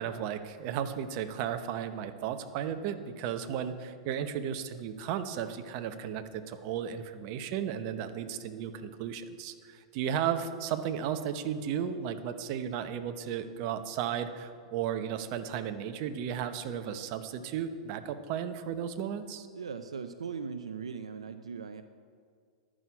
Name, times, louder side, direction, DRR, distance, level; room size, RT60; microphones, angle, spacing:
voice 1, 0.0-19.5, right 8 dB, 50° right, 9 dB, 0.9 m, -34 dB
voice 2, 19.5-21.8, right 6 dB, 90° right, 9 dB, 0.5 m, -39 dB
11.0 x 6.2 x 8.6 m, 2.1 s
hypercardioid pair, 110°, 3 cm